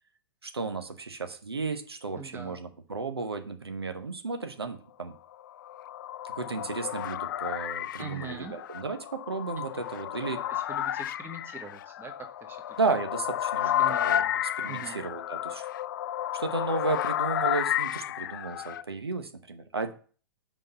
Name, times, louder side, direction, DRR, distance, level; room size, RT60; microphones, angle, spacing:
voice 1, 0.4-5.1 6.2-10.4 12.8-14.2 14.6-15.6 16.3-19.9, right 4 dB, 85° right, 7 dB, 1.0 m, -33 dB
voice 2, 2.1-2.6 8.0-8.5 9.6-9.7 10.2-12.1 12.4-12.7 13.8-14.4 14.7-15.0, right 5 dB, 15° right, 5 dB, 1.3 m, -43 dB
sound 1, 5.4-18.8, left 12 dB, 55° left, 0.4 m, -32 dB
5.5 x 5.3 x 6.7 m, 0.41 s
figure-of-eight pair, 105°, 13 cm